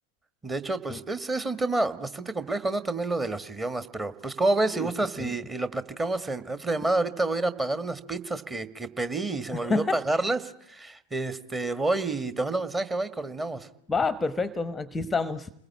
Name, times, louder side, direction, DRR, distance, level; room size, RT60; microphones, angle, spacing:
voice 1, 0.4-13.7, right 2 dB, 15° right, 11 dB, 1.7 m, -29 dB
voice 2, 9.5-10.0 13.9-15.5, left 3 dB, 10° left, 15 dB, 1.0 m, -28 dB
29.5 x 21.0 x 8.6 m, 0.71 s
figure-of-eight pair, 90°, 0 cm